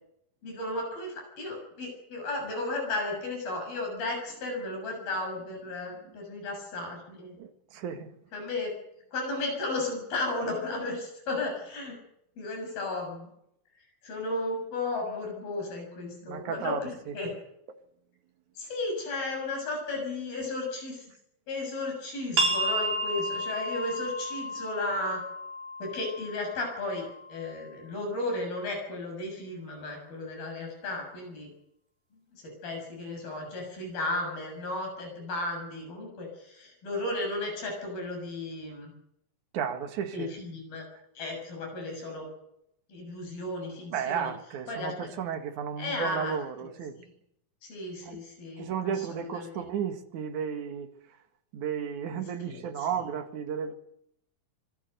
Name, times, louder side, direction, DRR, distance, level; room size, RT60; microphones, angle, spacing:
voice 1, 0.4-7.3 8.3-8.7 9.1-12.0 12.4-13.3 14.0-17.3 18.6-21.1 21.5-25.2 25.8-31.5 32.3-38.9 40.1-40.8 41.1-42.3 42.9-44.3 44.7-45.1 45.8-46.7 47.6-49.5 52.4-52.9, left 2 dB, 90° left, 8.7 m, -34 dB
voice 2, 7.4-8.1 16.3-16.8 17.1-17.2 39.5-40.3 43.9-46.9 48.0-48.2 48.6-50.9 51.5-53.7, right 7 dB, 60° right, 3.0 m, -33 dB
sound 1, 22.4-27.7, right 1 dB, 85° right, 5.9 m, -32 dB
25.0 x 19.5 x 6.7 m
omnidirectional pair, 4.1 m